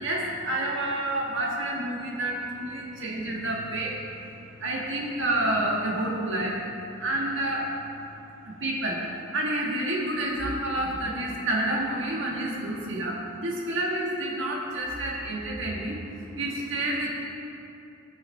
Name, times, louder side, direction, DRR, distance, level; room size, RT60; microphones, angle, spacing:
voice 1, 0.0-4.2 4.6-7.7 8.4-17.2, right 1 dB, 60° right, -3 dB, 1.6 m, -29 dB
17.5 x 6.2 x 3.3 m, 2.8 s
head